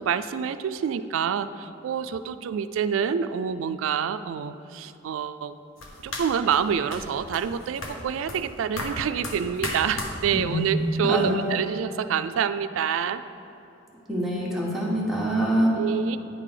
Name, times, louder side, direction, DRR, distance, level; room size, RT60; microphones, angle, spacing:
voice 1, 0.0-5.5 6.0-13.2 15.7-16.2, right 7 dB, 75° right, 13 dB, 0.3 m, -27 dB
sound 1, 5.8-11.6, left 1 dB, 85° left, 1.0 m, -37 dB
voice 2, 10.3-10.7 11.1-11.4 14.1-15.7, right 1 dB, ahead, -5 dB, 1.1 m, -25 dB
9.5 x 3.8 x 4.9 m, 3.0 s
head